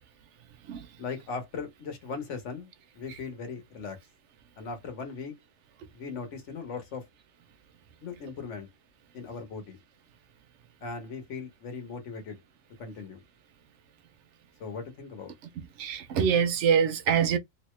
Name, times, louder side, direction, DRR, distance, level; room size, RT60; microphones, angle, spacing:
voice 1, 1.0-4.0 4.6-5.3 5.9-7.0 8.0-8.7 9.1-9.8 10.8-12.4 12.8-13.2 14.6-15.3, left 5 dB, 60° left, 1.3 m, -38 dB
voice 2, 15.8-17.4, right 7 dB, 65° right, 0.8 m, -24 dB
3.1 x 2.8 x 3.1 m
omnidirectional pair, 1.5 m